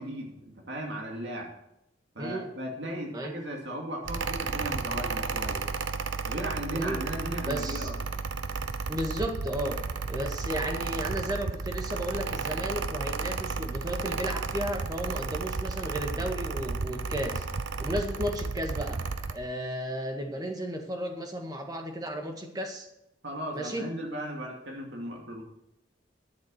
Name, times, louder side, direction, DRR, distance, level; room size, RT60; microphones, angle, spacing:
voice 1, 0.0-1.5 2.1-5.6 6.2-7.9 23.2-25.4, right 1 dB, 65° right, 0 dB, 2.5 m, -36 dB
voice 2, 2.2-2.5 3.1-3.4 6.7-7.0 7.4-7.9 8.9-9.8 10.1-17.5 17.8-19.0 19.3-22.9 23.5-23.9, equal, 20° right, 3 dB, 1.7 m, -34 dB
Mechanical fan, 4.1-19.4, right 4 dB, 85° right, 0.8 m, -33 dB
12.5 x 7.4 x 6.6 m, 0.83 s
head